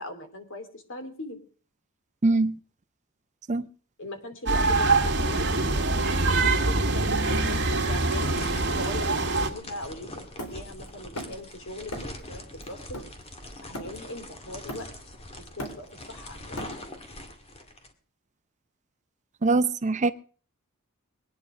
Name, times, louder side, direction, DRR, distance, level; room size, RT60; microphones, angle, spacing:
voice 1, 0.0-1.4 4.0-5.8 6.4-8.3 8.8-9.2 9.5-12.8 13.6-14.9 15.4-16.6, left 2 dB, 60° left, 3.0 m, -40 dB
voice 2, 2.2-2.5 3.5-3.6 19.4-20.1, right 3 dB, 35° right, 0.6 m, -22 dB
sound 1, 4.5-9.5, right 3 dB, 55° right, 2.2 m, -24 dB
sound 2, 7.3-17.9, left 1 dB, 30° left, 2.1 m, -43 dB
Hammer, 10.4-11.5 11.9-12.3 12.6-14.2 14.7-15.1 15.4-17.1, equal, 85° left, 3.8 m, -39 dB
22.0 x 9.9 x 5.0 m
head